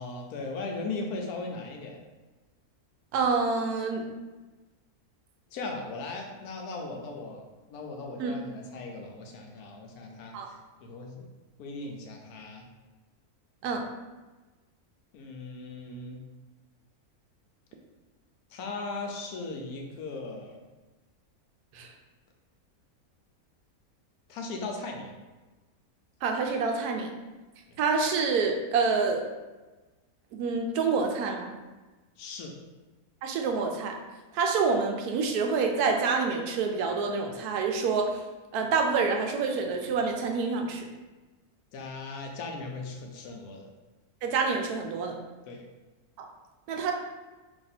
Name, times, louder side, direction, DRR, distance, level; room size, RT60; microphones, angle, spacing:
voice 1, 0.0-2.0 5.5-10.6 10.8-11.2 11.6-12.7 15.1-16.2 18.5-20.6 24.3-25.1 27.7-27.8 32.2-32.5 41.7-43.7 45.4-45.7, left 3 dB, 80° left, 2 dB, 1.1 m, -38 dB
voice 2, 3.1-4.1 8.2-8.4 10.3-10.5 13.6-13.9 21.7-21.9 26.2-27.1 27.8-29.2 30.3-31.5 33.2-34.0 34.3-38.2 38.5-40.9 44.2-45.2 46.2-46.3 46.7-46.9, right 4 dB, 80° right, 3 dB, 1.1 m, -27 dB
2.9 x 2.7 x 4.0 m, 1.2 s
omnidirectional pair, 1.6 m